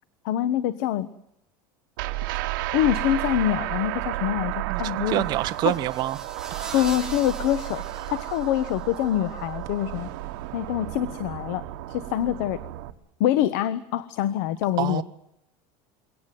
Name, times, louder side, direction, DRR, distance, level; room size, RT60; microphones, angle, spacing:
voice 1, 0.2-1.1 2.7-5.2 5.6-5.7 6.7-10.1 10.5-12.6 13.2-15.0, left 12 dB, 65° left, 15 dB, 1.2 m, -25 dB
sound 1, 2.0-12.9, right 16 dB, 75° right, 1.6 m, -32 dB
voice 2, 4.7-6.2 6.5-6.9 8.0-8.1 14.8-15.0, right 15 dB, 40° right, 8 dB, 1.3 m, -27 dB
sound 2, 5.2-9.1, right 3 dB, 5° right, 2.6 m, -43 dB
23.5 x 18.0 x 9.3 m, 0.80 s
cardioid pair, 165°, 11 cm